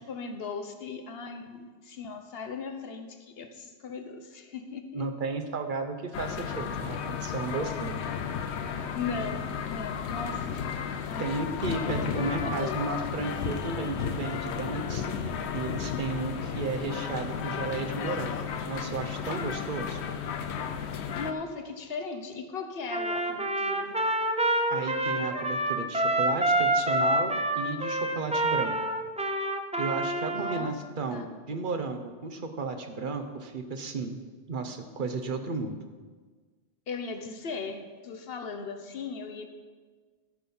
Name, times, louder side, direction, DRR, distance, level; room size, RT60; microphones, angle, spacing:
voice 1, 0.0-5.1 8.9-11.5 11.8-12.1 12.4-12.8 21.2-24.0 30.3-30.7 31.1-31.2 36.9-39.5, left 4 dB, 65° left, 6 dB, 1.2 m, -38 dB
voice 2, 4.9-8.0 11.2-15.1 15.5-20.0 24.7-28.8 29.8-34.2 34.5-35.8, right 3 dB, 50° right, 6 dB, 1.0 m, -34 dB
sound 1, 6.1-21.3, left 7 dB, 85° left, 1.0 m, -33 dB
Trumpet, 22.9-30.7, right 1 dB, 10° right, 0.4 m, -27 dB
13.5 x 6.1 x 5.5 m, 1.4 s
omnidirectional pair, 1.1 m